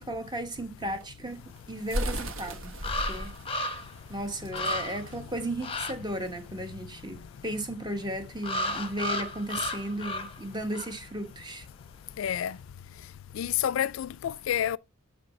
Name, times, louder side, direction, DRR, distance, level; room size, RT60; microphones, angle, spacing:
voice 1, 0.0-1.4 1.7-2.7 3.1-3.3 4.1-11.7, right 1 dB, 20° right, 1.0 m, -35 dB
sound 1, 0.9-6.4, equal, 75° right, 1.3 m, -36 dB
sound 2, 2.8-4.0 4.3-4.4 4.5-5.1 5.6-5.9 8.4-10.4 10.7-10.9, left 1 dB, 25° left, 0.8 m, -33 dB
voice 2, 12.2-12.5 13.4-14.8, left 10 dB, 70° left, 0.3 m, -29 dB
7.8 x 6.4 x 3.1 m
head